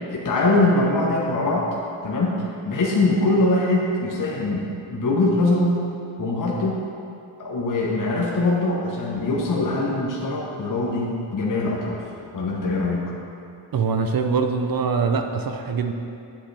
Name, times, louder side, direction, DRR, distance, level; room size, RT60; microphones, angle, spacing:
voice 1, 0.1-1.7 2.0-5.8 6.2-6.8 7.4-12.1 12.3-13.0, left 2 dB, 45° left, -3 dB, 1.1 m, -22 dB
voice 2, 13.7-15.9, right 5 dB, 50° right, 6 dB, 0.6 m, -23 dB
8.8 x 7.8 x 3.4 m, 2.6 s
wide cardioid pair, 110°, 46 cm